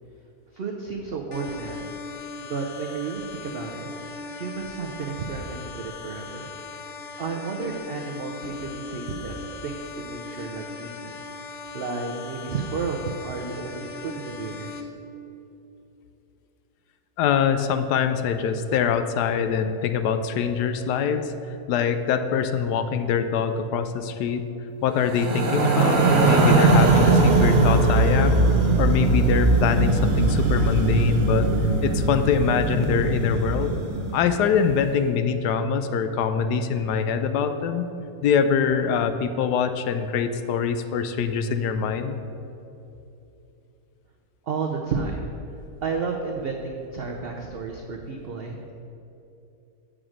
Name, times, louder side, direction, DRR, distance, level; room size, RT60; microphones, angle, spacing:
voice 1, 0.5-2.0 2.4-3.9 4.3-6.5 7.2-11.1 11.7-14.9 44.5-45.3 45.8-48.7, right 4 dB, 75° right, 1 dB, 0.5 m, -32 dB
sound 1, 1.3-14.8, left 4 dB, 65° left, 0.6 m, -39 dB
voice 2, 17.2-21.3 21.7-24.4 24.8-28.4 28.8-31.5 31.8-33.7 34.1-37.9 38.2-42.2, left 7 dB, 80° left, 9 dB, 1.1 m, -24 dB
sound 2, 25.0-34.4, right 3 dB, 40° right, 0.8 m, -20 dB
7.4 x 5.0 x 6.2 m, 2.9 s
omnidirectional pair, 1.7 m